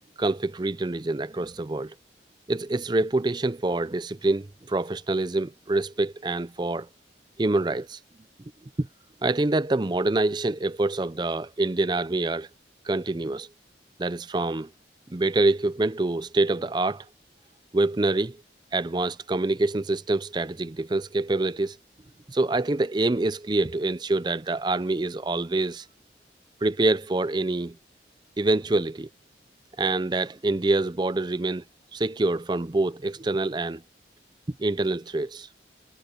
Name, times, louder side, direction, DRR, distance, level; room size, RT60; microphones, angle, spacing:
voice 1, 0.2-1.9 2.5-6.9 7.4-8.0 8.8-8.9 9.2-12.5 12.8-13.5 14.0-14.7 15.1-17.1 17.7-18.4 18.7-21.8 22.3-25.9 26.6-27.8 28.4-29.1 29.8-31.6 31.9-33.8 34.6-35.5, right 2 dB, 25° right, 0.5 m, -26 dB
head